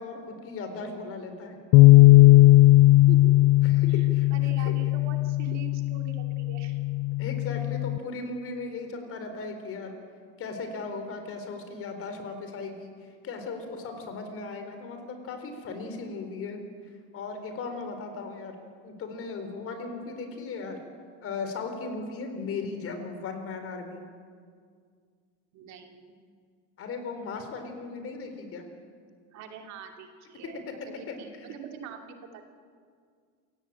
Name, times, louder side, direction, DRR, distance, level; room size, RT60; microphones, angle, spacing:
voice 1, 0.0-1.6 3.6-4.3 4.6-4.7 7.2-9.9 10.4-16.6 17.1-18.6 18.8-20.8 21.2-24.0 26.8-28.7 30.7-30.8 31.1-31.5, left 4 dB, 45° left, 6 dB, 4.3 m, -37 dB
sound 1, 1.7-8.0, left 18 dB, 60° left, 0.6 m, -18 dB
voice 2, 4.3-6.8 25.5-26.1 29.3-32.4, right 7 dB, 55° right, 4 dB, 2.8 m, -44 dB
27.5 x 17.0 x 8.8 m, 2.1 s
cardioid pair, 140°, 33 cm